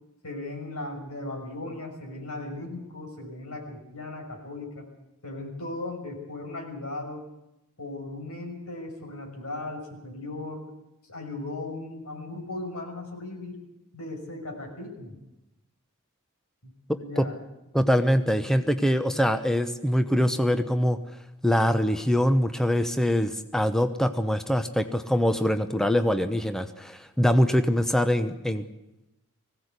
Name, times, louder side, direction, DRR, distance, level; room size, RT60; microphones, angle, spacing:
voice 1, 0.2-4.9 5.2-7.2 7.8-10.6 11.1-13.6 13.9-15.2 16.6-17.3, left 2 dB, 80° left, 2 dB, 5.9 m, -37 dB
voice 2, 16.9-17.3 17.7-21.0 21.4-28.6, equal, ahead, 8 dB, 0.9 m, -23 dB
20.0 x 16.5 x 8.3 m, 0.92 s
head